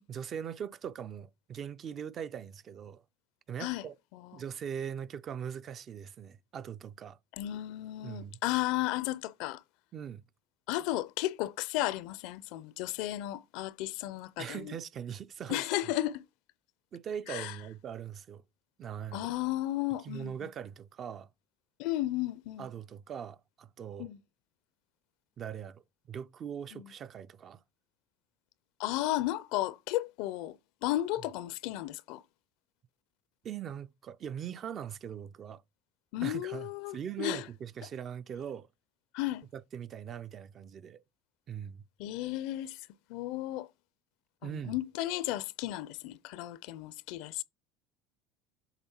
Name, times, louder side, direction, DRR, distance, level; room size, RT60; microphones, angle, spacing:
voice 1, 0.1-3.0 3.5-4.0 4.3-7.2 8.0-8.4 9.9-10.2 14.4-15.6 16.9-18.4 18.8-19.3 20.0-21.3 22.6-24.1 25.4-25.8 26.1-27.6 33.4-35.6 36.2-38.7 39.5-41.0 41.5-41.8 44.4-44.8, right 8 dB, 35° right, 0.4 m, -41 dB
voice 2, 4.1-4.4 7.4-9.6 10.7-14.8 15.5-16.2 17.3-17.5 19.1-20.5 21.8-22.7 24.0-24.2 26.7-26.9 28.8-30.6 30.8-32.2 36.1-37.5 39.1-39.4 42.0-42.8 43.1-43.7 44.4-47.4, left 15 dB, 70° left, 0.5 m, -34 dB
8.1 x 3.4 x 4.4 m
cardioid pair, 130°, 0 cm